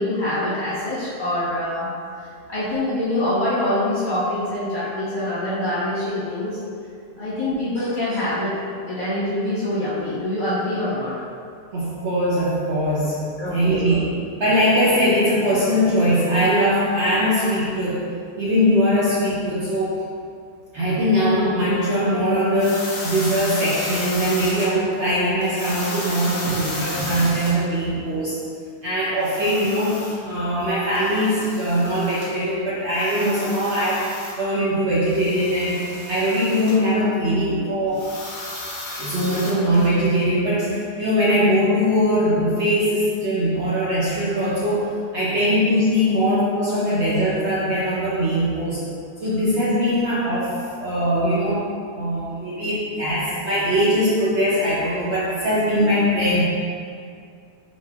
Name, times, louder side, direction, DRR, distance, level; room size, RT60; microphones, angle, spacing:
voice 1, 0.0-1.9 2.5-6.6 7.2-8.5 8.9-11.1 13.4-14.0 37.5-37.8, left 1 dB, 35° left, -11 dB, 0.9 m, -25 dB
voice 2, 11.7-14.1 14.4-18.1 18.4-20.1 20.7-28.4 28.8-38.2 38.9-48.9 49.2-56.4, equal, 60° right, -9 dB, 0.8 m, -21 dB
sound 1, 22.6-24.7 25.4-27.6 29.2-30.2 30.9-32.3 32.9-34.3 35.1-36.8 37.9-39.9, left 2 dB, 65° left, 0.4 m, -33 dB
sound 2, 26.4-27.6, right 2 dB, 85° right, 1.4 m, -33 dB
4.1 x 4.0 x 2.3 m, 2.3 s
omnidirectional pair, 1.7 m